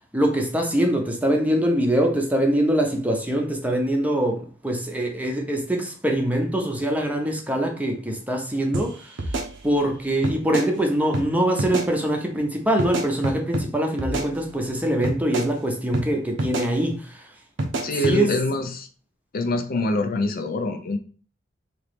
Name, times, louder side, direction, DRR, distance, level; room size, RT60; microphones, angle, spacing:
voice 1, 0.1-9.4 9.6-17.3 18.0-18.3, right 1 dB, 10° right, 0.7 m, -23 dB
sound 1, 8.7-8.9 9.2-9.9 10.2-10.7 11.1-11.3 11.6-11.9 12.8-13.7 14.0-14.7 15.0-15.5 15.9-16.1 16.4-16.7 17.6-18.2, right 2 dB, 85° right, 0.8 m, -27 dB
voice 2, 17.8-18.9 19.3-21.0, left 1 dB, 50° left, 0.5 m, -25 dB
3.9 x 2.9 x 3.4 m
head